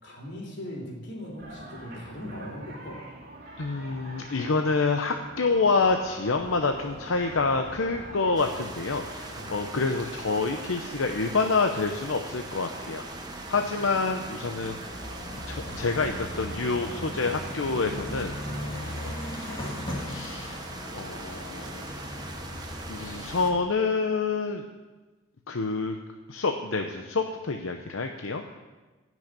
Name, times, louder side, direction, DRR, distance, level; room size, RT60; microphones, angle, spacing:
voice 1, 0.0-3.0 9.3-9.6, left 1 dB, 60° left, 0 dB, 3.6 m, -39 dB
sound 1, 1.4-19.2, right 1 dB, 45° right, 2.9 m, -46 dB
voice 2, 3.6-13.0 13.5-14.9 15.5-19.1 19.4-20.6 20.9-21.9 22.9-24.6 25.5-26.0 26.3-28.5, left 4 dB, 85° left, 5 dB, 0.8 m, -28 dB
sound 2, 6.4-23.6, left 1 dB, 25° left, 2.0 m, -40 dB
sound 3, 8.4-23.5, right 2 dB, 20° right, 1.1 m, -42 dB
15.5 x 6.4 x 8.9 m, 1.2 s
head